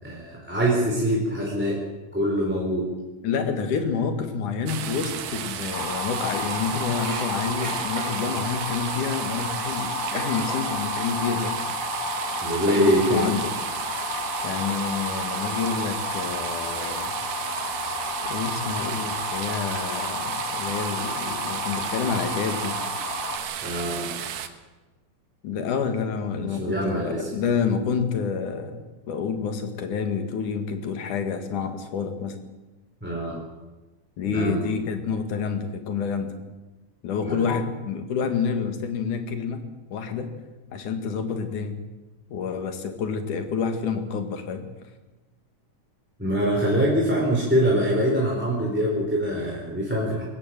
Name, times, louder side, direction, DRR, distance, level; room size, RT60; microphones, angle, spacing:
voice 1, 0.0-1.8 2.1-2.9 12.4-13.3 23.6-24.1 26.4-27.3 33.0-33.4 34.2-34.6 37.2-37.5 46.2-50.2, equal, 5° right, -4 dB, 3.7 m, -24 dB
voice 2, 3.2-11.6 12.8-13.5 13.9-14.1 14.4-17.1 18.2-22.8 25.4-32.4 34.2-36.3 37.0-40.3 40.7-41.8 42.3-44.6, left 6 dB, 75° left, 7 dB, 3.4 m, -28 dB
sound 1, 4.7-24.5, right 9 dB, 85° right, 2.8 m, -33 dB
sound 2, 5.7-23.4, left 2 dB, 40° left, 3.2 m, -32 dB
sound 3, 6.5-8.4 8.8-8.9 9.2-10.9 11.2-11.5 11.8-11.9 12.2-13.6 14.0-14.3 14.6-15.1 15.6-15.7 16.3-16.4 16.8-17.5 18.0-18.1 18.8-18.9 19.3-20.2, right 3 dB, 55° right, 4.9 m, -40 dB
22.5 x 18.0 x 7.5 m, 1.2 s
omnidirectional pair, 3.6 m